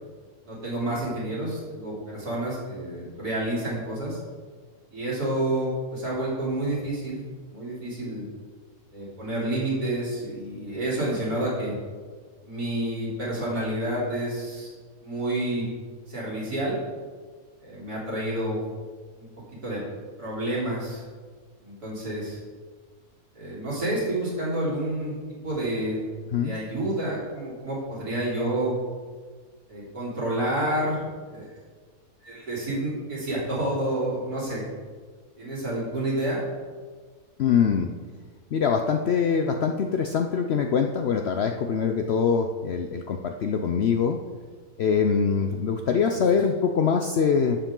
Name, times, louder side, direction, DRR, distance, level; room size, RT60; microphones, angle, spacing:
voice 1, 0.5-4.2 4.9-7.2 7.5-8.3 8.9-11.8 12.4-14.7 15.0-15.7 16.1-16.8 17.6-18.6 19.2-19.3 19.6-19.8 20.2-21.0 21.6-22.4 23.3-25.1 25.4-26.0 26.4-28.8 29.7-31.0 31.3-31.4 32.2-34.7 35.4-36.4, right 1 dB, 75° right, -6 dB, 4.0 m, -29 dB
voice 2, 37.4-37.9 38.5-44.2 44.8-47.6, left 6 dB, 65° left, 4 dB, 0.6 m, -23 dB
11.5 x 7.2 x 3.8 m, 1.5 s
omnidirectional pair, 1.6 m